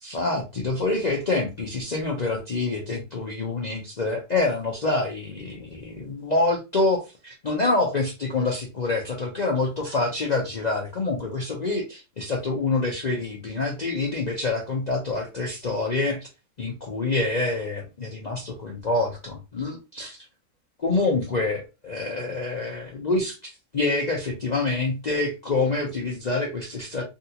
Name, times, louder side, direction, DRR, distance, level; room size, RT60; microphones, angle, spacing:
voice 1, 0.0-16.2 16.6-20.2 20.8-27.0, left 3 dB, 55° left, -1 dB, 0.4 m, -26 dB
3.6 x 2.3 x 2.8 m, 0.27 s
omnidirectional pair, 1.6 m